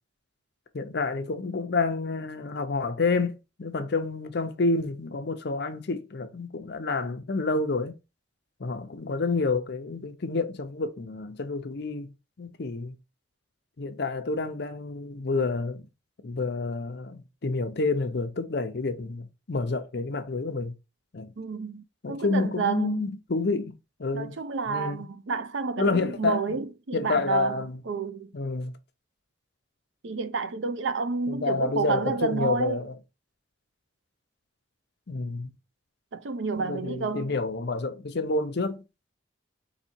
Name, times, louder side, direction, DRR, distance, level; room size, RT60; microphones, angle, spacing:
voice 1, 0.7-8.0 8.6-12.1 12.4-13.0 13.8-15.9 16.2-20.7 21.1-21.3 22.0-23.7 24.0-24.4 24.7-25.0 25.8-26.6 26.9-27.8 28.3-28.7 31.3-32.9 35.1-35.5 36.6-38.8, left 3 dB, 60° left, 0.6 m, -29 dB
voice 2, 21.4-23.1 24.1-28.3 30.0-32.8 36.1-37.3, right 5 dB, 70° right, 0.6 m, -30 dB
4.0 x 2.7 x 4.4 m
head